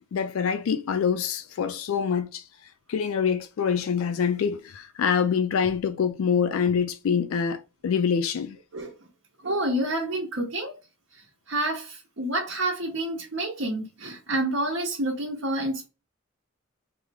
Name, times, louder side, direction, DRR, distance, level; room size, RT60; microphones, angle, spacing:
voice 1, 0.1-2.4 2.9-8.6, left 6 dB, 80° left, 0.3 m, -25 dB
voice 2, 9.4-10.7 11.5-15.9, right 1 dB, 65° right, 0.9 m, -28 dB
3.4 x 2.0 x 3.3 m
head